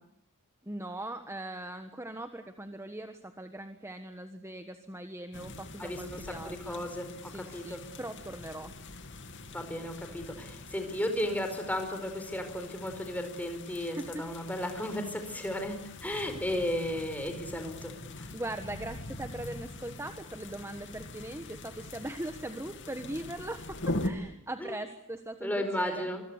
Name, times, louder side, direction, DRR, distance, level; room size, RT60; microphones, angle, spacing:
voice 1, 0.6-6.9 7.2-8.7 14.0-14.3 18.3-26.1, right 1 dB, 10° right, 8 dB, 1.3 m, -40 dB
sound 1, 5.3-24.1, left 2 dB, 55° left, 2.6 m, -43 dB
voice 2, 5.8-6.2 6.4-7.8 9.5-17.9 18.2-18.3 24.6-24.7 25.4-26.2, left 1 dB, 5° left, 6 dB, 4.7 m, -34 dB
26.0 x 22.0 x 8.2 m, 0.75 s
head